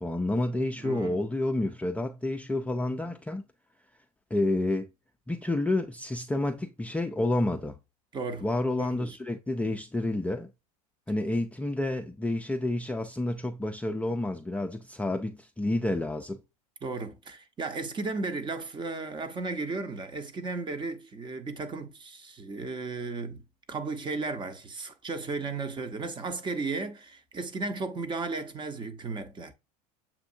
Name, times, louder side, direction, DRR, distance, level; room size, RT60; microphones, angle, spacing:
voice 1, 0.0-3.4 4.3-4.9 5.3-7.8 8.4-10.5 11.1-16.4, left 2 dB, 5° left, 0.4 m, -29 dB
voice 2, 0.8-1.2 8.1-8.4 8.8-9.2 16.8-23.4 23.7-29.5, right 3 dB, 25° right, 0.8 m, -35 dB
7.0 x 2.6 x 2.6 m
hypercardioid pair, 95°, 19 cm